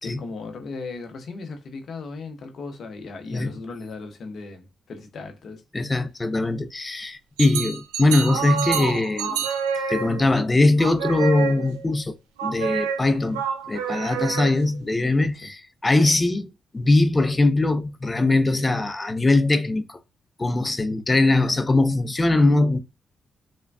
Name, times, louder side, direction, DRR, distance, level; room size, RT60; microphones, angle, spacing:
voice 1, 0.0-5.6 15.4-15.5, left 3 dB, 65° left, 0.7 m, -37 dB
voice 2, 5.7-9.4 9.9-12.2 12.4-13.4 13.7-16.5 16.7-20.0 20.4-22.8, left 2 dB, 30° left, 0.5 m, -21 dB
sound 1, 7.4-10.4 10.8-11.8 12.4-14.8, right 7 dB, 90° right, 0.3 m, -28 dB
3.4 x 2.1 x 2.3 m
hypercardioid pair, 45°, 0 cm